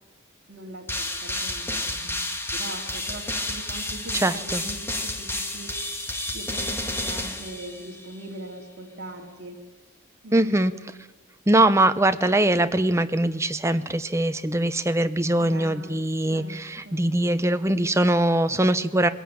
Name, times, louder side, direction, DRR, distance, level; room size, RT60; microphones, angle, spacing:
voice 1, 0.5-2.2 2.5-5.9 6.3-9.6 10.2-10.9 15.4-17.1, right 1 dB, 55° right, -2 dB, 2.5 m, -41 dB
sound 1, 0.9-8.2, left 2 dB, 10° left, 1.7 m, -31 dB
voice 2, 4.1-4.6 10.3-10.7 11.5-19.1, right 1 dB, 15° right, 10 dB, 0.8 m, -22 dB
21.5 x 16.0 x 8.8 m, 1.1 s
head